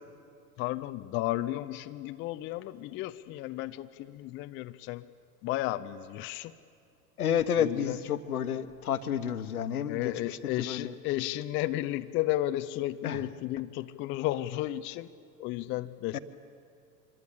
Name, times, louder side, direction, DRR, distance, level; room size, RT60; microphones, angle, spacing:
voice 1, 0.6-5.1 5.4-6.5 7.6-8.0 9.9-15.1 15.4-16.2, left 15 dB, 25° left, 9 dB, 0.6 m, -33 dB
voice 2, 7.2-10.9 13.0-13.2 16.1-16.2, left 9 dB, 70° left, 11 dB, 1.2 m, -30 dB
26.0 x 22.5 x 8.3 m, 2.3 s
figure-of-eight pair, 90°, 46 cm